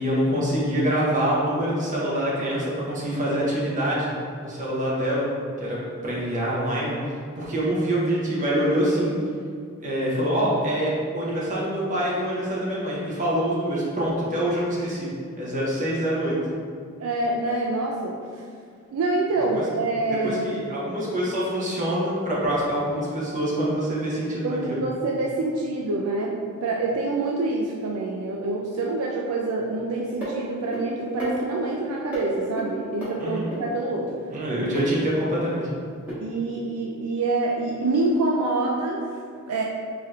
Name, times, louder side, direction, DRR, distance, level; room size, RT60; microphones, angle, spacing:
voice 1, 0.0-4.1 4.4-5.3 5.6-7.0 7.4-9.1 9.8-15.1 15.4-16.3 19.5-19.6 20.1-24.8 33.2-33.5 34.3-35.6, equal, 35° right, -6 dB, 0.9 m, -25 dB
voice 2, 17.0-18.2 18.9-20.5 24.4-34.1 36.2-39.0 39.5-39.6, right 2 dB, 75° right, -1 dB, 0.4 m, -26 dB
sound 1, 30.2-30.3 30.7-30.8 31.2-31.8 32.1-32.2 32.6-32.7 33.0-33.1 33.5-33.6 34.7-34.9 36.1-36.2, right 1 dB, 10° right, 1.3 m, -31 dB
4.9 x 2.8 x 2.4 m, 2.2 s
head